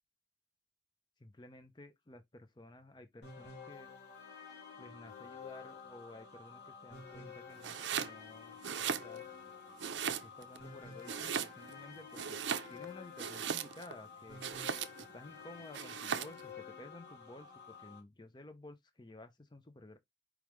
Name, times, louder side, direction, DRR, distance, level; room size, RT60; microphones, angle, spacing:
voice 1, 1.2-3.9 4.8-9.3 10.1-12.4 12.7-14.4 15.0-20.0, left 1 dB, 25° left, 0.6 m, -54 dB
sound 1, 3.2-18.0, left 6 dB, 55° left, 2.2 m, -51 dB
Domestic sounds home sounds, 7.6-8.2 8.5-9.4 9.8-10.6 11.0-11.8 12.1-13.9 14.4-15.1 15.7-16.4, right 7 dB, 70° right, 0.5 m, -38 dB
4.8 x 3.5 x 3.1 m
head